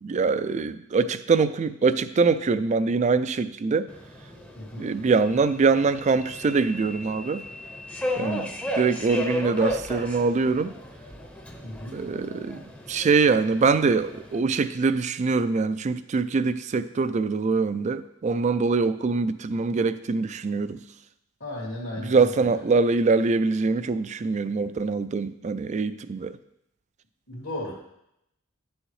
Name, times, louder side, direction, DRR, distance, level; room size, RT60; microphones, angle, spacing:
voice 1, 0.0-3.9 4.8-7.4 8.2-8.5 8.7-10.7 11.9-20.8 22.0-26.4, right 4 dB, 35° right, 14 dB, 0.3 m, -23 dB
Subway metro underground, 3.9-14.4, left 1 dB, 5° left, 0.7 m, -35 dB
voice 2, 4.6-4.9 8.2-8.4 11.6-12.0 21.4-22.6 27.3-27.7, left 1 dB, 75° left, -7 dB, 2.0 m, -35 dB
11.0 x 6.3 x 3.2 m, 0.81 s
head